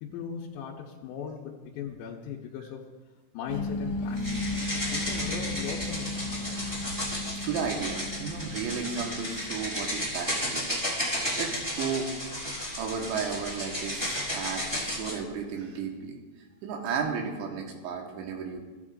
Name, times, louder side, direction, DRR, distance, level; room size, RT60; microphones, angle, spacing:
voice 1, 0.0-2.9 3.3-4.4 4.7-6.6, left 7 dB, 85° left, -3 dB, 3.0 m, -38 dB
sound 1, 3.5-10.1, left 2 dB, 60° left, 2.1 m, -35 dB
sound 2, 4.2-15.2, equal, 10° right, 1.5 m, -33 dB
voice 2, 7.3-10.7 11.0-11.1 11.4-12.1 12.8-16.2 16.6-18.6, right 6 dB, 90° right, 2 dB, 3.5 m, -33 dB
16.5 x 9.0 x 2.5 m, 1.3 s
omnidirectional pair, 5.1 m